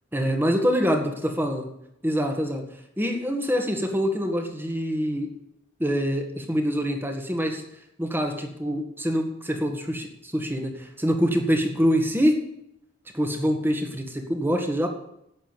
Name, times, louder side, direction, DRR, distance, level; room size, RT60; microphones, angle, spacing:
voice 1, 0.1-1.7 2.0-2.6 3.0-5.3 5.8-7.6 8.0-12.3 13.1-14.9, equal, 10° right, 4 dB, 1.8 m, -25 dB
11.5 x 8.9 x 7.4 m, 0.77 s
head